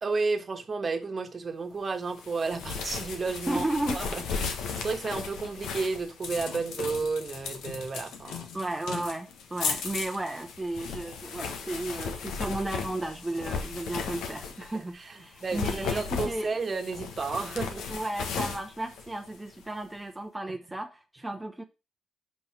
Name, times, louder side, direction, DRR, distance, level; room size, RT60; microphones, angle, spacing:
voice 1, 0.0-3.6 3.9-8.5 14.7-18.0, right 4 dB, 35° right, 1.4 m, -32 dB
sound 1, 2.2-14.8 15.3-19.6, left 6 dB, 80° left, 1.3 m, -36 dB
voice 2, 3.5-4.0 8.5-16.5 17.9-21.6, right 1 dB, 10° right, 0.9 m, -34 dB
5.5 x 5.4 x 6.0 m
cardioid pair, 90°, 0 cm